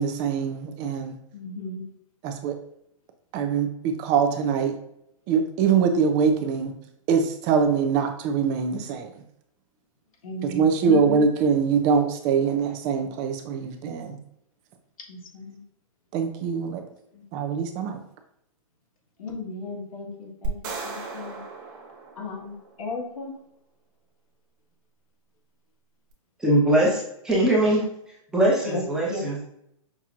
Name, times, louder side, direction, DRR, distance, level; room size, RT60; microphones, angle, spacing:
voice 1, 0.0-1.2 2.2-2.6 3.3-4.7 5.3-6.7 7.1-9.1 10.4-14.2 16.1-16.8 17.3-18.0, right 6 dB, 20° right, 7 dB, 0.4 m, -23 dB
voice 2, 1.3-1.9 10.2-11.2 15.1-15.6 19.2-20.6 20.8-21.4 22.2-23.3 28.6-28.8 29.1-29.2, left 3 dB, 75° left, 0 dB, 1.5 m, -34 dB
sound 1, 20.4-22.8, right 2 dB, 40° right, 1.0 m, -36 dB
voice 3, 26.4-27.9 28.3-29.5, right 1 dB, 5° right, -5 dB, 0.9 m, -21 dB
5.8 x 2.8 x 2.4 m, 0.75 s
hypercardioid pair, 155°, 18 cm